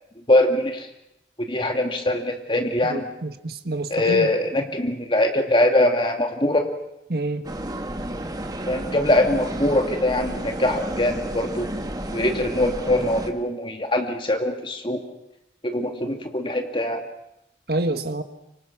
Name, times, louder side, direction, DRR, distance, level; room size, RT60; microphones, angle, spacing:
voice 1, 0.3-0.9 1.5-3.0 3.9-6.7 8.7-11.7 12.1-15.0 15.6-17.0, left 1 dB, 30° left, 4 dB, 2.5 m, -22 dB
voice 2, 2.8-4.3 7.1-7.4 17.7-18.2, right 2 dB, 60° right, 8 dB, 1.5 m, -27 dB
sound 1, 7.4-13.3, right 1 dB, 20° right, 1.5 m, -31 dB
25.5 x 25.0 x 6.2 m, 0.89 s
head